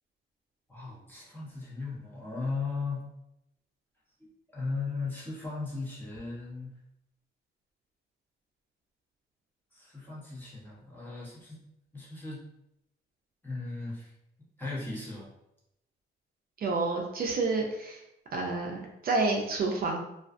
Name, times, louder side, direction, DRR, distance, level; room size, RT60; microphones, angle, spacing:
voice 1, 0.7-3.0 4.5-6.7 9.7-11.6 11.9-12.4 13.4-14.1 14.6-15.3, left 3 dB, 10° left, -6 dB, 1.0 m, -37 dB
voice 2, 16.6-18.0 18.3-20.0, right 3 dB, 50° right, 0 dB, 0.4 m, -29 dB
2.3 x 2.2 x 2.5 m, 0.85 s
cardioid pair, 90°, 20 cm